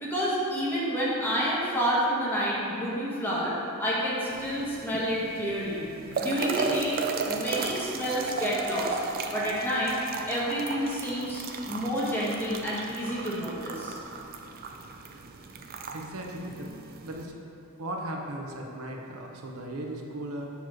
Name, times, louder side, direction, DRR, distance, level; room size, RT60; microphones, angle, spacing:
voice 1, 0.0-9.0 9.3-9.9 10.3-14.0, equal, 10° left, -7 dB, 1.2 m, -29 dB
sound 1, 4.3-17.3, right 4 dB, 40° right, 0.4 m, -35 dB
voice 2, 15.9-16.7 17.0-17.4 17.8-20.5, right 1 dB, 75° right, 0 dB, 0.7 m, -37 dB
7.0 x 3.0 x 6.0 m, 2.6 s
head